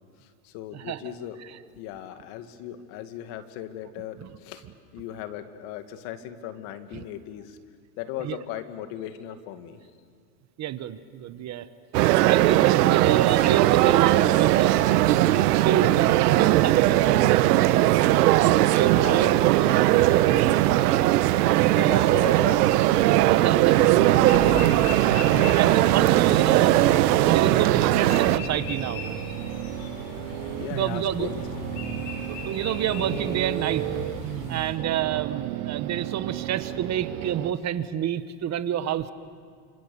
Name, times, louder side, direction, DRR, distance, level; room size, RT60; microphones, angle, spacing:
voice 1, 0.4-1.4 1.8-4.6 4.9-7.6 8.0-9.8 19.0-19.3 21.6-22.9 30.6-31.3, left 11 dB, 60° left, 8 dB, 2.2 m, -37 dB
voice 2, 10.6-11.7 12.1-14.8 15.6-17.4 18.7-21.0 21.8-22.3 23.3-24.6 25.0-29.5 30.5-31.3 32.3-33.8 34.5-39.1, right 10 dB, 35° right, 12 dB, 1.3 m, -29 dB
sound 1, 11.9-28.4, right 15 dB, 80° right, 1.1 m, -19 dB
sound 2, 23.8-34.7, left 3 dB, 75° left, 7.1 m, -36 dB
sound 3, 26.6-37.5, right 17 dB, 60° right, 0.9 m, -34 dB
29.5 x 26.5 x 7.1 m, 2.1 s
supercardioid pair, 115°, 46 cm